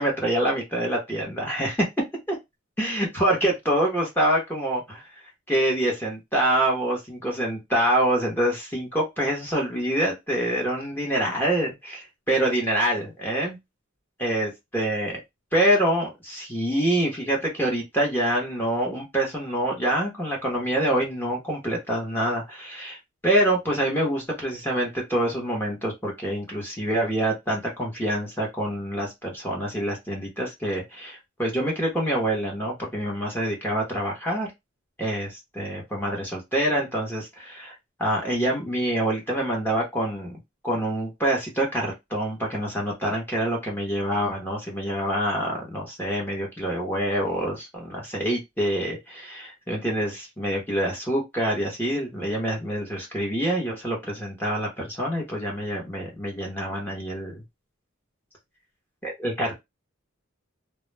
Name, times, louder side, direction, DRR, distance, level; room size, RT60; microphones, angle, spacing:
voice 1, 0.0-1.9 2.3-2.4 2.8-5.2 5.5-13.6 14.2-15.2 15.5-23.0 23.2-34.5 35.0-57.4 59.0-59.6, right 1 dB, 10° left, -2 dB, 0.8 m, -26 dB
2.2 x 2.0 x 3.1 m, 0.19 s
head